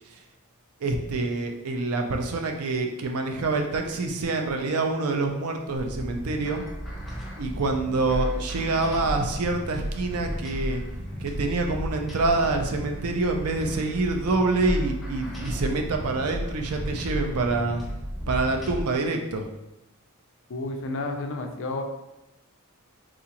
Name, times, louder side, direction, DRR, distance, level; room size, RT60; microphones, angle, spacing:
voice 1, 0.8-6.6 7.4-10.8 11.2-17.8 18.3-19.4, right 3 dB, 75° right, 4 dB, 0.5 m, -26 dB
sound 1, 5.8-18.8, equal, ahead, 0.6 m, -33 dB
voice 2, 20.5-21.8, left 2 dB, 60° left, 4 dB, 0.4 m, -31 dB
3.7 x 2.4 x 2.9 m, 0.93 s
head